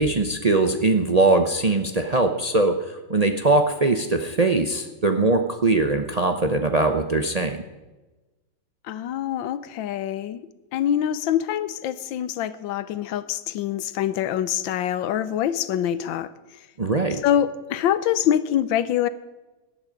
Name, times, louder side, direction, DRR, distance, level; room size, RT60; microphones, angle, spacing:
voice 1, 0.0-7.6 16.8-17.2, right 3 dB, 70° right, 5 dB, 0.3 m, -21 dB
voice 2, 8.8-10.4 10.7-16.3 17.2-19.1, left 10 dB, 90° left, 14 dB, 1.5 m, -25 dB
17.5 x 11.0 x 5.2 m, 1.1 s
omnidirectional pair, 2.0 m